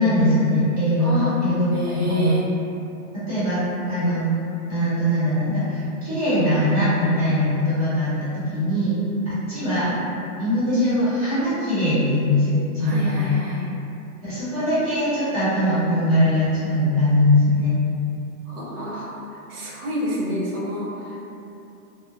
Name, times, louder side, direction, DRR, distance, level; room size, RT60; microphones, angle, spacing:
voice 1, 0.0-2.3 3.3-3.6 3.9-4.3 4.7-9.0 9.3-9.9 10.4-13.3 14.2-17.8, left 1 dB, 25° right, -13 dB, 0.6 m, -21 dB
voice 2, 1.0-1.3 1.7-2.4 12.8-13.6 18.5-19.1 19.5-21.2, left 1 dB, 75° right, -5 dB, 0.9 m, -28 dB
2.8 x 2.1 x 2.5 m, 2.7 s
hypercardioid pair, 170°, 45 cm